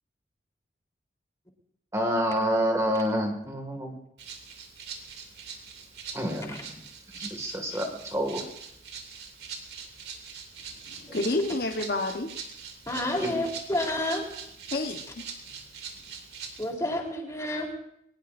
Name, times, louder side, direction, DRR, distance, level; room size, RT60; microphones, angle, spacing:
voice 1, 1.9-4.0 6.1-6.8 7.1-8.4 13.2-13.3, equal, 15° right, 2 dB, 2.1 m, -28 dB
Rattle (instrument), 4.2-16.7, right 6 dB, 65° right, 2.8 m, -43 dB
voice 2, 10.9-12.3 14.7-15.3, left 2 dB, 55° left, 4 dB, 1.2 m, -29 dB
voice 3, 12.9-14.3 16.6-17.7, left 1 dB, 20° left, -1 dB, 3.8 m, -29 dB
23.0 x 20.0 x 2.7 m, 0.72 s
head